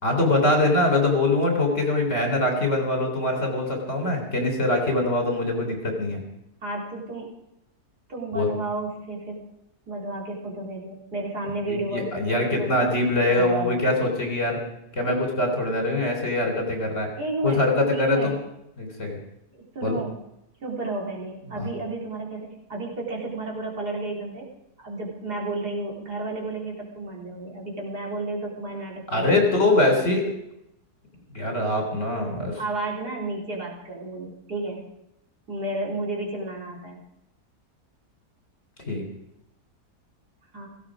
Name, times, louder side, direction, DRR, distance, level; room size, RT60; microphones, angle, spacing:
voice 1, 0.0-6.2 8.3-8.5 11.7-14.6 14.9-17.1 17.4-18.3 18.8-19.2 19.8-20.0 21.5-21.7 29.1-30.2 31.3-32.6 38.9-39.0, left 2 dB, 50° left, 2 dB, 4.0 m, -23 dB
voice 2, 6.6-7.3 8.1-9.4 9.9-13.0 13.3-13.8 17.2-17.6 17.9-18.3 19.5-20.1 20.6-24.5 24.8-29.7 32.6-34.8 35.5-37.0 40.5-40.7, right 2 dB, 80° right, -2 dB, 4.0 m, -32 dB
17.0 x 16.0 x 5.0 m, 0.83 s
omnidirectional pair, 1.7 m